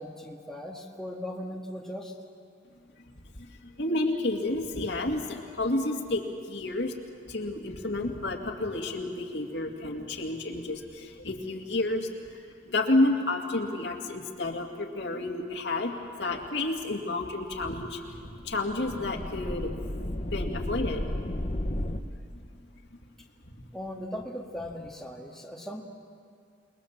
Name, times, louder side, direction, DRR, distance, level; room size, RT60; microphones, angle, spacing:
voice 1, 0.0-2.1 23.7-25.8, equal, 5° left, -1 dB, 1.8 m, -38 dB
voice 2, 3.4-6.9 7.3-12.4 12.7-15.9 16.2-18.0 18.4-19.7 20.3-21.0, left 2 dB, 65° left, 2 dB, 2.3 m, -30 dB
sound 1, 18.0-22.0, left 1 dB, 35° left, 1.1 m, -33 dB
29.0 x 21.0 x 7.4 m, 2.3 s
head